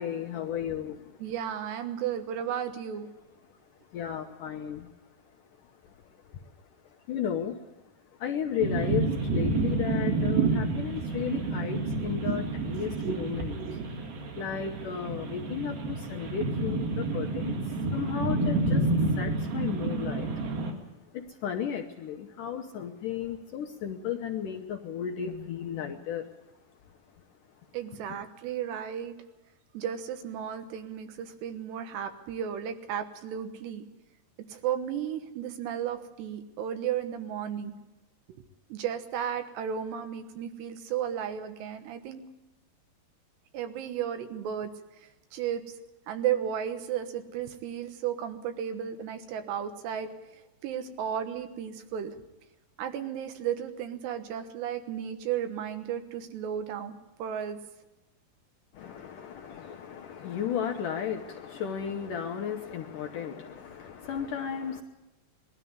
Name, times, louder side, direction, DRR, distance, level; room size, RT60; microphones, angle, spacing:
voice 1, 0.0-1.2 3.9-4.9 5.8-6.0 6.3-6.4 6.8-7.6 8.2-13.8 14.4-17.6 17.9-18.9 19.2-20.3 21.1-26.3 58.7-64.8, left 8 dB, 70° left, 2.0 m, -34 dB
voice 2, 1.2-3.1 12.7-13.9 27.7-29.1 29.7-33.8 34.5-37.7 38.7-42.2 43.5-44.7 45.3-45.6 46.1-50.1 50.6-52.1 52.8-56.9 57.2-57.6, right 9 dB, 80° right, 3.4 m, -34 dB
sound 1, 8.6-20.7, right 3 dB, 65° right, 3.9 m, -29 dB
21.0 x 13.0 x 9.5 m
omnidirectional pair, 4.8 m